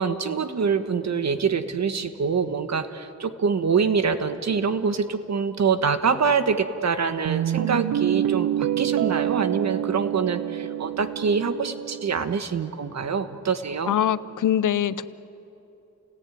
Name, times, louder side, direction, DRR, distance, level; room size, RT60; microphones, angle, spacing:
voice 1, 0.0-13.9, right 5 dB, 60° right, 9 dB, 1.5 m, -25 dB
Guitar, 7.3-12.3, right 11 dB, 90° right, 0.6 m, -27 dB
voice 2, 13.9-15.0, left 10 dB, 80° left, 16 dB, 0.8 m, -23 dB
29.5 x 18.5 x 9.3 m, 2.9 s
cardioid pair, 80°, 31 cm